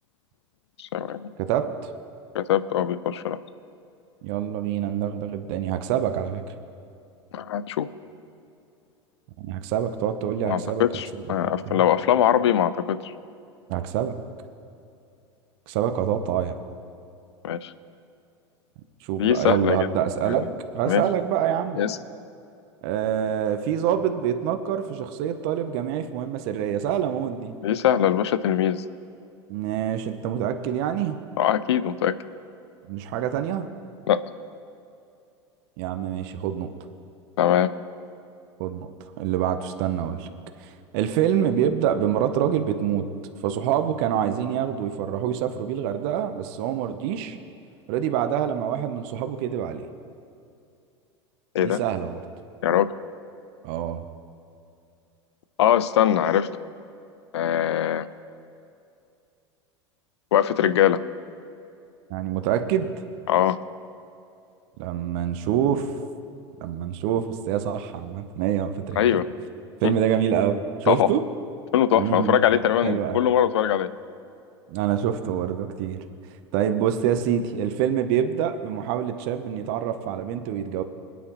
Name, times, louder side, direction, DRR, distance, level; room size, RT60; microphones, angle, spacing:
voice 1, 0.8-1.3 2.3-3.4 7.3-7.9 10.5-13.1 17.4-17.7 19.2-20.0 20.3-20.4 20.9-21.0 21.8-22.0 27.6-28.8 31.4-32.1 34.1-34.2 37.4-37.7 51.5-51.8 52.6-52.9 55.6-56.5 57.3-58.1 60.3-61.0 63.3-63.6 69.0-69.2 69.8-69.9 70.9-71.1 71.7-73.9, left 10 dB, 70° left, 15 dB, 0.6 m, -22 dB
voice 2, 1.4-1.7 4.2-6.4 9.4-10.9 11.1-11.2 11.7-11.8 13.7-14.2 15.7-16.6 19.0-20.5 20.7-21.8 22.8-27.5 29.5-31.2 32.9-33.7 35.8-36.7 38.6-38.9 39.2-40.3 40.6-43.1 43.4-47.4 47.9-49.9 51.6-52.2 53.6-54.1 62.1-62.9 64.8-65.9 66.6-69.2 69.8-71.2 71.9-72.4 72.8-73.2 74.7-76.0 76.5-80.8, right 9 dB, 55° right, 8 dB, 0.9 m, -26 dB
25.0 x 9.3 x 3.1 m, 2.6 s
figure-of-eight pair, 80°, 15 cm